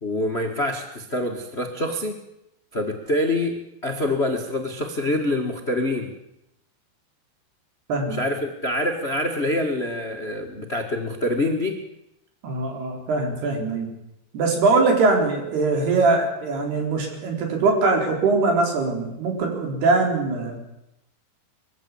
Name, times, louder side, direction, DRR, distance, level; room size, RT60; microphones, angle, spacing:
voice 1, 0.0-2.2 2.7-6.1 8.1-11.8, left 1 dB, 45° left, 4 dB, 0.7 m, -26 dB
voice 2, 12.4-13.9 14.3-20.7, right 3 dB, 80° right, 2 dB, 6.2 m, -22 dB
22.5 x 15.5 x 8.5 m, 0.85 s
omnidirectional pair, 4.5 m